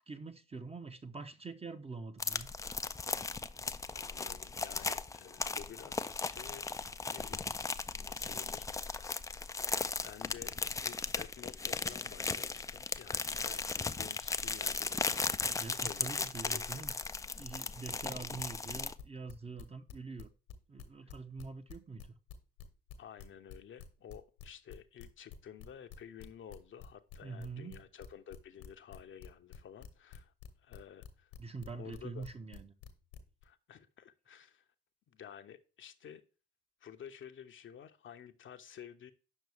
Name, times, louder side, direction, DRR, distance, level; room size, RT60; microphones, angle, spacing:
voice 1, 0.1-2.5 15.6-16.9 17.4-20.3 20.7-22.1 27.2-27.8 31.4-32.7, right 4 dB, 20° right, 0.7 m, -45 dB
sound 1, 2.2-18.9, left 4 dB, 10° left, 0.4 m, -37 dB
voice 2, 3.9-6.7 7.1-7.5 7.9-9.2 10.0-10.5 10.8-16.8 21.0-21.1 23.0-30.3 30.6-31.3 31.7-32.3 33.4-34.7 35.1-36.2 36.8-39.1, left 9 dB, 40° left, 0.7 m, -52 dB
sound 2, 18.4-20.5 20.8-33.4, left 10 dB, 65° left, 1.1 m, -50 dB
8.3 x 6.0 x 3.4 m
figure-of-eight pair, 45°, 31 cm